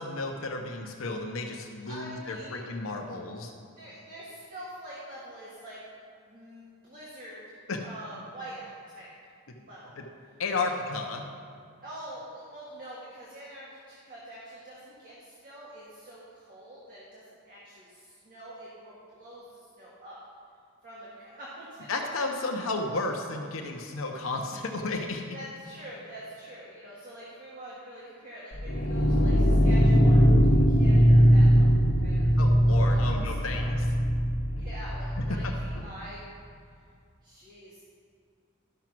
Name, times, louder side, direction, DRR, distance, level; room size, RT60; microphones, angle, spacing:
voice 1, 0.0-3.5 7.7-7.8 10.0-10.1 10.4-11.2 21.9-25.4 32.4-33.9 35.2-35.5, left 3 dB, 75° left, 2 dB, 0.8 m, -33 dB
voice 2, 1.9-2.7 3.8-5.8 6.2-7.4 7.8-9.1 9.6-10.0 10.5-10.8 11.8-20.2 20.8-21.9 22.2-22.3 25.3-32.3 32.9-33.1 33.5-33.7 34.5-36.2 37.2-37.8, right 1 dB, 45° right, -7 dB, 1.8 m, -45 dB
sound 1, 28.5-35.8, equal, 60° left, 1.3 m, -21 dB
12.0 x 6.0 x 6.0 m, 2.3 s
head